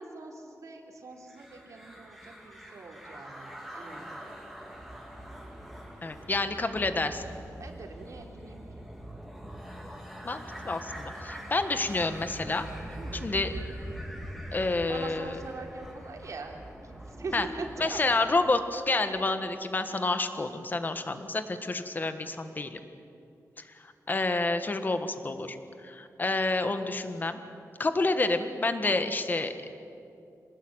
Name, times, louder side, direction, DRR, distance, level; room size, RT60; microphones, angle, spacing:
voice 1, 0.0-4.2 7.6-8.8 12.9-13.3 14.9-18.0, right 3 dB, 60° right, 2 dB, 3.5 m, -42 dB
sound 1, 1.3-18.3, equal, ahead, 3.3 m, -43 dB
voice 2, 6.0-7.2 10.2-12.7 13.2-13.5 14.5-15.3 17.3-17.4 17.8-22.8 23.8-25.6 25.8-27.4 27.8-29.5, left 2 dB, 30° left, 8 dB, 1.6 m, -29 dB
27.0 x 19.5 x 9.1 m, 2.6 s
wide cardioid pair, 160°, 6 cm